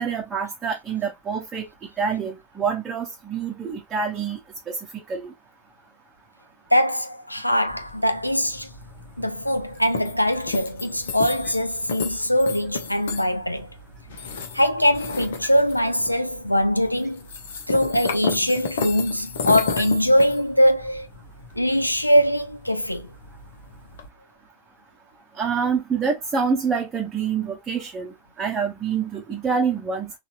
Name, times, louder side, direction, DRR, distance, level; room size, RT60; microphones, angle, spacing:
voice 1, 0.0-1.7 2.0-4.4 4.7-5.3 25.4-30.1, right 6 dB, 20° right, 0.8 m, -26 dB
voice 2, 6.7-8.7 9.2-13.7 14.5-17.3 17.7-21.1 21.5-23.1, equal, 85° left, 0.4 m, -22 dB
sound 1, 7.7-24.1, left 5 dB, 60° left, 0.8 m, -34 dB
4.0 x 2.5 x 2.5 m
figure-of-eight pair, 90°, 0 cm